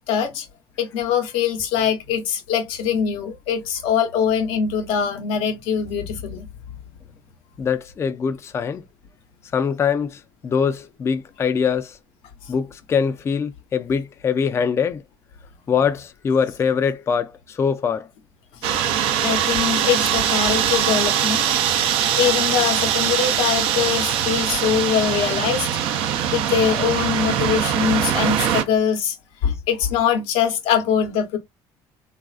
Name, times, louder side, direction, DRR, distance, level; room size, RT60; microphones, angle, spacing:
voice 1, 0.1-0.5 0.8-6.5 6.7-6.8 19.2-21.5 22.2-25.7 26.3-29.1 29.4-31.4, left 7 dB, 85° left, 0.8 m, -22 dB
voice 2, 7.6-8.8 9.5-12.0 12.5-15.0 15.7-18.1, left 6 dB, 30° left, 0.3 m, -23 dB
sound 1, 18.6-28.6, right 9 dB, 80° right, 0.5 m, -22 dB
3.1 x 2.4 x 2.3 m
cardioid pair, 105°, 9 cm